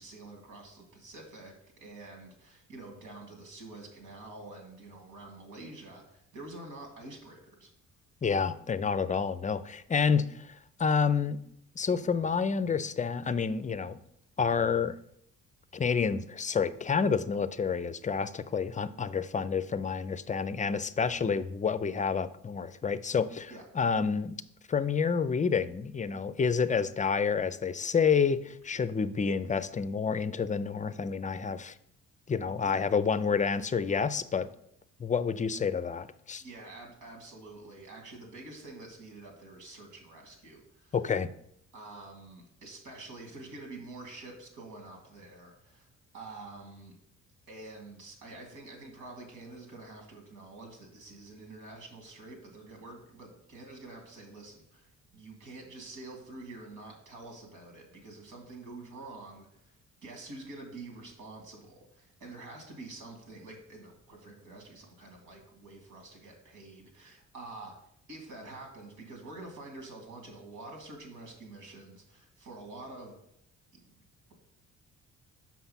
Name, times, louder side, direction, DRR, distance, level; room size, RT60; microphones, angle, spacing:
voice 1, 0.0-7.7 23.5-23.6 32.6-32.9 36.4-41.0 41.7-46.9 47.5-67.7 68.1-73.2 73.7-73.9, right 2 dB, 85° right, 2 dB, 2.8 m, -47 dB
voice 2, 8.2-10.5 10.8-11.4 11.8-14.0 14.4-14.9 15.7-24.4 24.7-31.7 32.3-34.5 35.0-36.4 40.9-41.3, left 6 dB, 25° left, 14 dB, 0.4 m, -29 dB
5.9 x 5.9 x 5.7 m, 0.73 s
cardioid pair, 90°, 30 cm